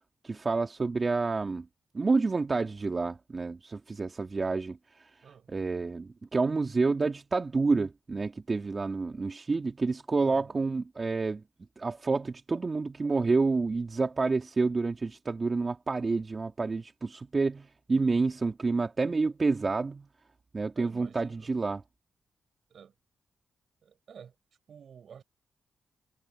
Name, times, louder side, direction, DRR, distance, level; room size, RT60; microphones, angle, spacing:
voice 1, 0.2-1.7 1.9-5.1 5.5-11.4 11.8-20.1 20.5-21.8, right 3 dB, 40° right, 2.3 m, -29 dB
voice 2, 5.2-5.5 10.2-10.7 20.7-21.5 22.7-22.9 23.8-24.3 24.7-25.2, right 7 dB, 70° right, 6.5 m, -51 dB
supercardioid pair, 50°, 0 cm